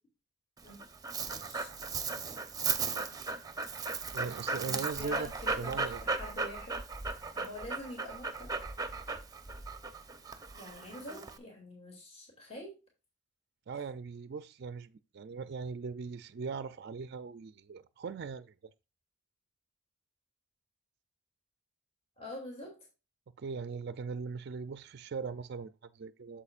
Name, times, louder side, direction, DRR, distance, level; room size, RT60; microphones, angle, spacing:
Dog, 0.6-11.4, right 4 dB, 20° right, 0.8 m, -36 dB
voice 1, 1.2-1.7 2.8-3.1 4.6-6.8 7.3-8.5 10.5-12.8 22.2-22.8, left 1 dB, 30° left, 2.7 m, -46 dB
voice 2, 4.1-6.0 13.7-18.5 23.4-26.4, right 5 dB, 55° right, 0.4 m, -40 dB
8.5 x 7.4 x 2.4 m
head